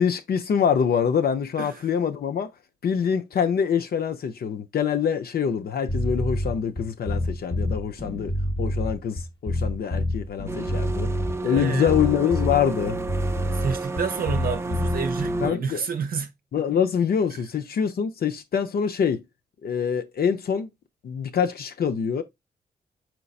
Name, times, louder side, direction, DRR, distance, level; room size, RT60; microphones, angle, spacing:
voice 1, 0.0-2.5 2.8-11.1 11.4-13.0 15.4-15.8 16.5-19.2 19.6-20.7 21.0-22.2, left 7 dB, 65° left, 0.6 m, -25 dB
sound 1, 5.9-15.5, left 1 dB, 30° left, 1.0 m, -27 dB
sound 2, 10.5-15.5, right 3 dB, 15° right, 0.4 m, -31 dB
voice 2, 11.4-11.9 13.5-16.3, right 6 dB, 60° right, 0.6 m, -29 dB
4.5 x 4.0 x 2.4 m
cardioid pair, 60°, 17 cm